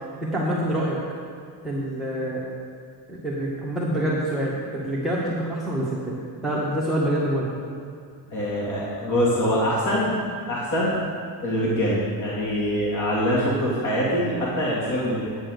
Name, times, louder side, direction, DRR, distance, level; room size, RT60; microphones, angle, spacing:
voice 1, 0.2-1.0 1.6-2.4 3.1-6.2 6.4-7.5, right 1 dB, ahead, -7 dB, 1.6 m, -26 dB
voice 2, 8.3-10.2 10.5-11.0 11.4-15.2, equal, 45° left, -6 dB, 2.6 m, -24 dB
9.7 x 8.8 x 6.6 m, 2.4 s
cardioid pair, 145°, 43 cm